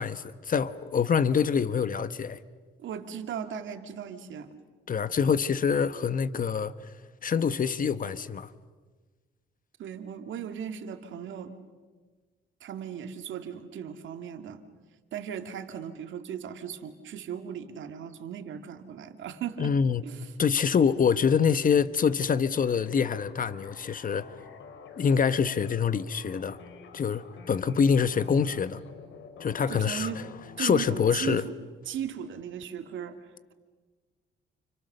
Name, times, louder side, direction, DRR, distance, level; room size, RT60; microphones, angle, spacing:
voice 1, 0.0-2.4 4.9-6.9 7.2-8.5 19.6-20.0 20.4-24.3 25.0-26.6 26.9-28.8 29.4-30.1 30.6-31.5, left 6 dB, 45° left, 1.2 m, -25 dB
voice 2, 2.8-4.5 9.8-11.5 12.6-14.6 15.1-19.7 20.0-20.3 29.7-30.2 30.6-31.6 31.9-33.5, right 8 dB, 75° right, 2.3 m, -37 dB
sound 1, 22.6-30.6, left 6 dB, 70° left, 3.8 m, -48 dB
30.0 x 29.5 x 6.8 m
cardioid pair, 90°, 20 cm